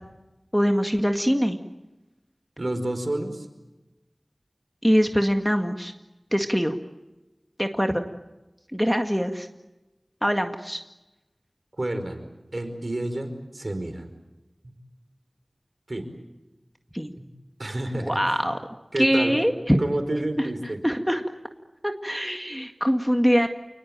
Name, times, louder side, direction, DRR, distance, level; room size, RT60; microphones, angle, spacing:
voice 1, 0.5-1.6 4.8-5.9 6.3-6.7 7.6-8.0 8.7-9.5 10.2-10.8 16.9-17.1 18.0-18.6 19.0-19.8 20.4-20.5 20.8-21.2 21.8-23.5, equal, ahead, 5 dB, 1.9 m, -23 dB
voice 2, 2.6-3.5 11.8-12.3 12.5-14.1 14.6-14.7 15.9-16.1 17.2-17.3 17.6-18.4 18.9-19.4 19.8-20.8, right 1 dB, 60° right, 7 dB, 4.8 m, -29 dB
29.0 x 20.0 x 8.9 m, 1.0 s
wide cardioid pair, 50°, 0 cm